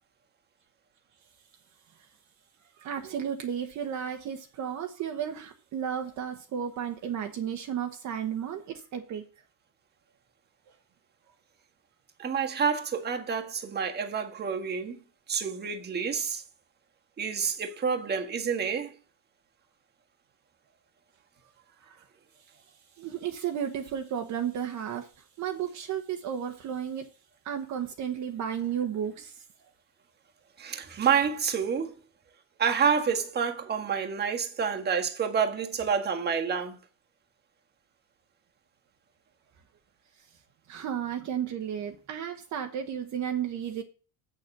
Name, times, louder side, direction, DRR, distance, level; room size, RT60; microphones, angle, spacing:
voice 1, 2.8-9.2 21.8-22.0 23.0-25.1 25.4-27.1 27.4-29.4 40.7-43.8, right 9 dB, 50° right, 1.2 m, -33 dB
voice 2, 12.2-15.0 15.3-16.4 17.2-18.9 30.6-31.9 32.6-36.8, right 6 dB, 25° right, 1.5 m, -28 dB
8.0 x 6.8 x 5.9 m
cardioid pair, 135°, 38 cm